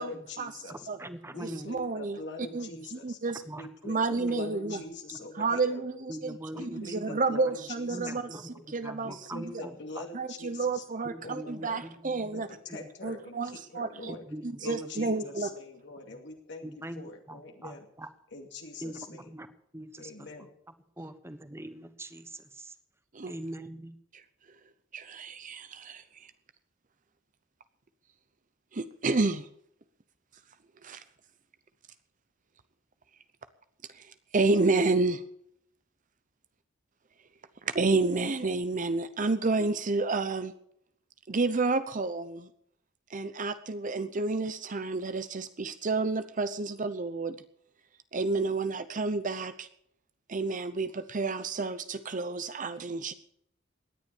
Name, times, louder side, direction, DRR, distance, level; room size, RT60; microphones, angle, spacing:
voice 1, 0.0-0.9 1.3-3.2 3.5-6.1 6.5-8.6 9.0-10.8 11.2-11.8 12.3-14.2 14.6-17.9 18.3-19.3 20.0-20.5, left 2 dB, 65° left, 3 dB, 2.4 m, -43 dB
voice 2, 0.7-1.7 2.7-2.8 3.5-3.7 4.2-4.3 4.6-4.8 5.1-5.2 6.1-6.6 7.0-7.4 7.9-10.0 11.0-12.4 12.7-12.9 14.1-15.3 16.6-18.1 18.8-19.5 19.7-20.1 21.0-22.7 23.3-24.0, right 1 dB, 15° right, 10 dB, 1.2 m, -42 dB
voice 3, 1.4-2.2 2.5-3.4 3.8-4.8 5.3-9.5 10.1-12.5 13.0-14.2 14.4-15.5 23.1-23.3 24.9-26.3 28.7-29.5 30.8-31.0 33.9-35.2 37.6-40.5 41.3-42.5 43.1-47.4 48.1-49.7 50.3-53.1, right 3 dB, 40° right, 11 dB, 0.8 m, -30 dB
18.0 x 10.5 x 7.1 m, 0.70 s
head